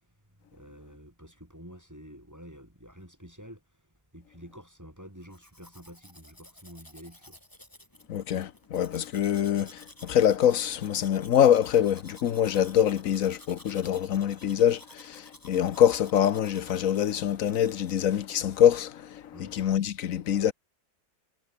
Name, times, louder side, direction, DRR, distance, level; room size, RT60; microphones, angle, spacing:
voice 1, 0.4-3.6 4.1-7.4 19.3-19.5, equal, 10° right, 4.5 m, -48 dB
Domestic sounds home sounds, 5.2-18.8, left 1 dB, 10° left, 3.1 m, -53 dB
voice 2, 8.1-20.5, left 10 dB, 60° left, 1.2 m, -24 dB
omnidirectional pair, 1.7 m